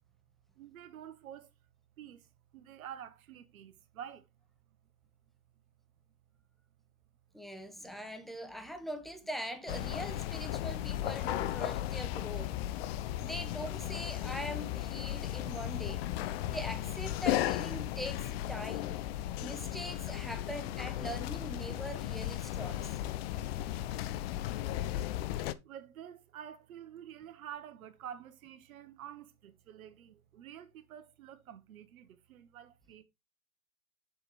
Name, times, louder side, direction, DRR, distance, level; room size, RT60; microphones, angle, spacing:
voice 1, 0.5-1.5 2.0-4.3 4.7-4.8 7.6-8.7 12.5-12.6 23.3-23.4 25.6-33.0, right 9 dB, 70° right, 1.2 m, -50 dB
voice 2, 7.3-12.5 13.2-16.0 16.5-19.0 19.4-22.9, equal, ahead, 0.8 m, -42 dB
sound 1, 9.7-25.5, left 13 dB, 45° left, 0.6 m, -36 dB
7.0 x 4.8 x 4.1 m
hypercardioid pair, 120°, 44 cm